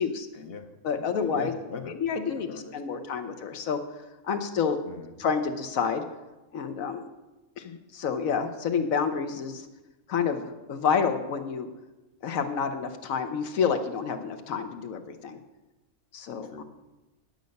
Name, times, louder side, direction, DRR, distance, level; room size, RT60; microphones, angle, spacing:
voice 1, 0.3-3.3 4.8-5.1 16.4-16.6, left 5 dB, 50° left, 7 dB, 0.9 m, -42 dB
voice 2, 0.8-1.5 2.0-3.8 4.2-4.8 5.2-6.0 6.5-7.1 7.6-9.7 10.1-11.7 12.2-15.4 16.1-16.6, left 6 dB, 75° left, 7 dB, 1.1 m, -29 dB
9.4 x 7.9 x 5.2 m, 1.1 s
omnidirectional pair, 1.5 m